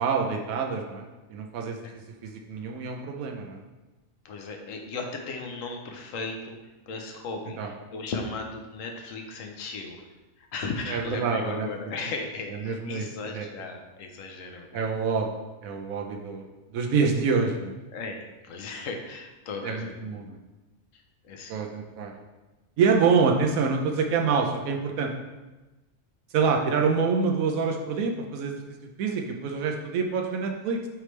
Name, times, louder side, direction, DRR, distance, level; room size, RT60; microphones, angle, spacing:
voice 1, 0.0-1.8 2.2-3.6 7.6-7.7 10.9-11.7 12.5-13.5 14.7-15.3 15.6-16.5 16.7-17.7 19.6-20.4 21.5-22.1 22.8-25.1 26.3-28.6 29.0-30.8, right 5 dB, 85° right, 3 dB, 1.1 m, -26 dB
voice 2, 4.2-6.6 6.9-10.0 10.4-14.9 17.9-20.3 20.9-21.6, left 3 dB, 75° left, 3 dB, 1.1 m, -36 dB
9.2 x 3.3 x 3.2 m, 1.1 s
omnidirectional pair, 1.4 m